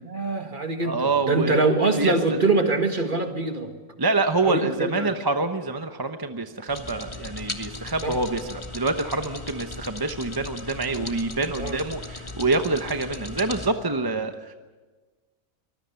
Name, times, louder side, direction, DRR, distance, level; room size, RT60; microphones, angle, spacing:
voice 1, 0.0-3.7 4.4-5.1 8.0-8.2 10.9-11.1 11.6-11.8, right 3 dB, 35° right, 5 dB, 2.0 m, -24 dB
voice 2, 0.8-2.4 4.0-14.5, right 3 dB, 20° right, 7 dB, 0.8 m, -26 dB
sound 1, 6.7-13.7, left 2 dB, 20° left, 1.5 m, -37 dB
24.5 x 20.0 x 7.0 m, 1.3 s
omnidirectional pair, 1.4 m